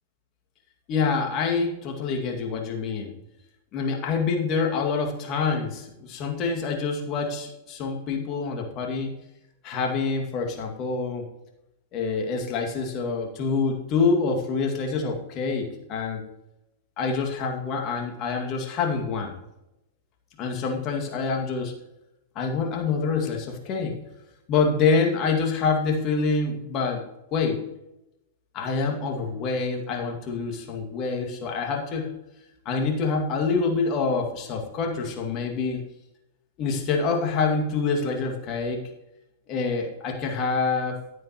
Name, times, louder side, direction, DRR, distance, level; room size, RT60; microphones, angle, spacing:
voice 1, 0.9-3.1 3.7-9.1 9.6-11.3 11.9-16.2 17.0-19.4 20.4-21.7 22.4-24.0 24.5-27.0 27.3-27.6 28.5-32.1 32.7-35.8 36.6-38.8 39.5-41.0, left 4 dB, 40° left, 2 dB, 2.2 m, -26 dB
11.0 x 9.4 x 3.0 m, 0.90 s
hypercardioid pair, 105°, 0 cm